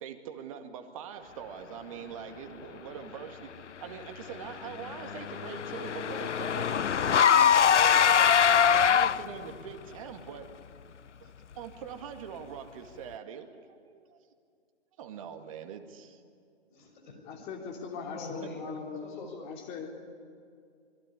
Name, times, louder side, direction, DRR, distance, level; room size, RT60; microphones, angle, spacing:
voice 1, 0.0-3.5 3.8-10.5 11.2-11.3 11.6-14.2 15.0-16.2 18.4-18.5, right 8 dB, 30° right, 7 dB, 2.0 m, -43 dB
Car / Engine, 4.4-9.5, left 8 dB, 90° left, 0.7 m, -23 dB
voice 2, 16.7-17.4 17.9-18.6 19.0-19.5, left 3 dB, 45° left, 3 dB, 6.0 m, -45 dB
voice 3, 17.3-19.0 19.4-19.9, left 6 dB, 20° left, 2 dB, 3.1 m, -40 dB
26.0 x 22.5 x 9.9 m, 2.3 s
hypercardioid pair, 150°, 34 cm